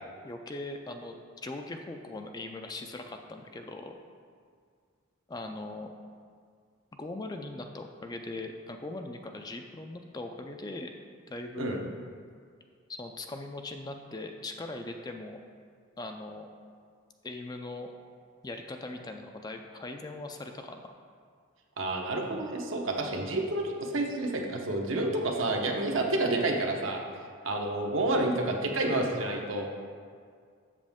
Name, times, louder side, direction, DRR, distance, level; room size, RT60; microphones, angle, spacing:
voice 1, 0.2-3.9 5.3-5.9 7.0-10.9 11.3-11.8 12.9-15.4 16.0-16.5 17.2-17.9 18.4-20.9, left 2 dB, 20° left, 4 dB, 0.3 m, -40 dB
voice 2, 21.8-27.0 27.4-29.7, right 2 dB, 70° right, 1 dB, 0.9 m, -29 dB
7.5 x 7.1 x 3.6 m, 2.1 s
head